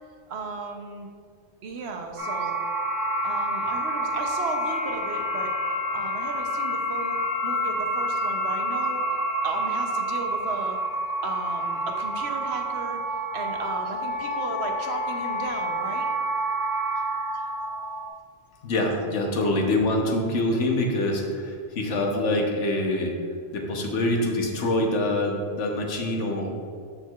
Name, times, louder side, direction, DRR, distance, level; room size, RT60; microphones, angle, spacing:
voice 1, 0.3-1.1 1.6-2.6 3.2-9.0 9.4-10.8 11.2-13.0 13.3-16.1 17.3-17.4, right 4 dB, 70° right, 3 dB, 1.0 m, -35 dB
sound 1, 2.2-18.1, right 1 dB, 35° right, 1.7 m, -28 dB
voice 2, 18.6-23.2 23.5-26.5, left 1 dB, 80° left, 1 dB, 1.3 m, -25 dB
13.0 x 4.5 x 2.4 m, 2.2 s
omnidirectional pair, 1.2 m